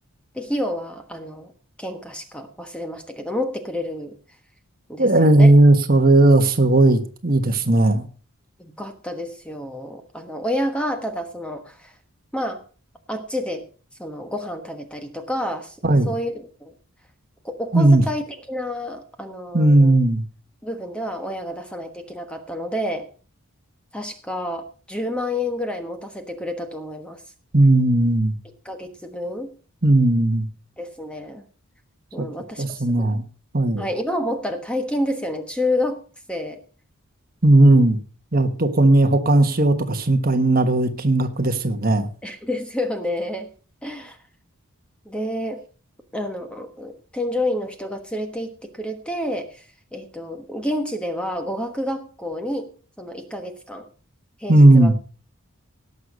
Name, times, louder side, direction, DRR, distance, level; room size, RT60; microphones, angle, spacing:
voice 1, 0.3-1.5 1.8-4.2 4.9-5.5 8.6-11.9 12.3-12.6 13.1-13.7 14.0-15.8 16.0-16.7 17.4-20.0 20.6-23.1 23.9-27.2 28.6-29.5 30.8-31.4 32.1-33.1 33.8-36.0 36.3-36.6 42.2-43.5 43.8-44.2 45.0-45.6 46.1-49.6 49.9-52.7 53.0-53.9 54.4-54.9, left 1 dB, 5° left, 6 dB, 1.2 m, -29 dB
voice 2, 5.0-8.1 15.8-16.1 17.7-18.0 19.5-20.2 27.5-28.3 29.8-30.5 32.2-32.3 32.6-33.2 33.5-33.8 37.4-38.0 38.3-42.1 54.5-54.9, right 2 dB, 40° right, 7 dB, 1.3 m, -16 dB
18.0 x 6.6 x 5.4 m, 0.39 s
head